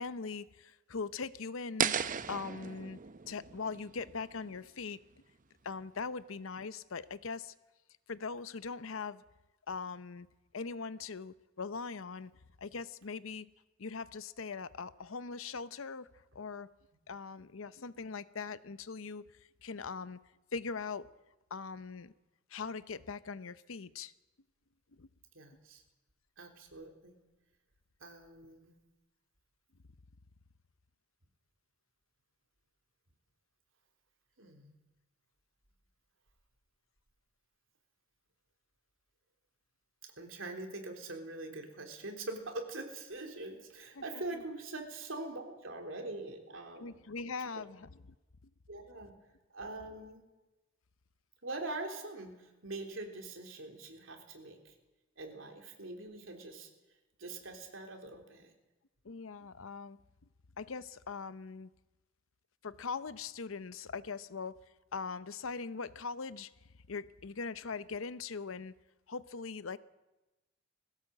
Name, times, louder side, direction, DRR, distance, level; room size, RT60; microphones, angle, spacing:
voice 1, 0.0-2.0 2.3-3.0 3.3-5.0 5.6-7.5 8.1-9.2 9.7-10.3 10.5-12.3 12.6-13.5 13.8-16.1 16.3-16.7 17.1-19.2 19.6-20.2 20.5-21.1 21.5-22.1 22.5-24.1 25.0-25.1 44.0-44.1 44.3-44.4 46.8-47.9 59.0-60.0 60.6-61.7 62.6-64.6 64.9-66.5 66.9-68.7 69.1-69.8, left 4 dB, 75° left, 0.7 m, -41 dB
sound 1, 1.8-4.8, right 7 dB, 40° right, 0.7 m, -36 dB
voice 2, 25.3-25.8 26.4-27.1 28.0-28.7 34.4-34.7 40.0-47.0 48.7-49.1 49.5-50.2 51.4-54.7 55.2-56.7 57.2-58.5, right 2 dB, 70° right, 3.4 m, -43 dB
20.5 x 16.5 x 7.6 m
head